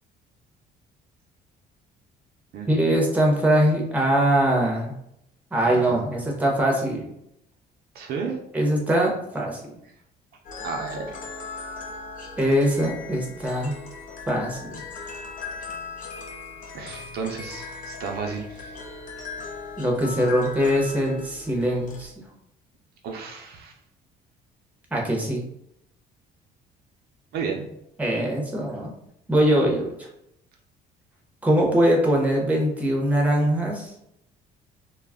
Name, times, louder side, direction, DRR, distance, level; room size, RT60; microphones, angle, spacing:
voice 1, 2.7-4.9 5.5-7.1 8.5-9.6 12.4-13.7 14.3-14.8 19.8-22.1 24.9-25.4 28.0-28.9 29.3-29.9 31.4-33.9, equal, 10° right, -1 dB, 0.7 m, -22 dB
voice 2, 5.6-6.1 7.9-8.4 10.6-11.1 16.7-18.7 23.0-23.7 27.3-27.7, right 5 dB, 70° right, 2 dB, 0.5 m, -32 dB
sound 1, 10.4-22.0, left 4 dB, 50° left, 0.6 m, -38 dB
2.3 x 2.0 x 3.4 m, 0.78 s
cardioid pair, 110°, 17 cm